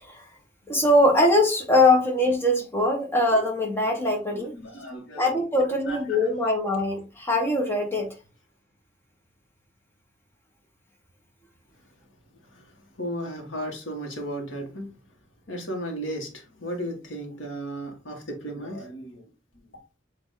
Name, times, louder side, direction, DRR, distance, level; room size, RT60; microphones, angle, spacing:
voice 1, 0.7-4.5 5.1-8.1, left 1 dB, 10° left, 1.6 m, -22 dB
voice 2, 4.3-5.4 5.8-6.5 12.5-12.6 13.0-14.9 15.5-19.2 19.6-19.7, equal, 90° left, 1.8 m, -35 dB
7.9 x 3.0 x 4.0 m
head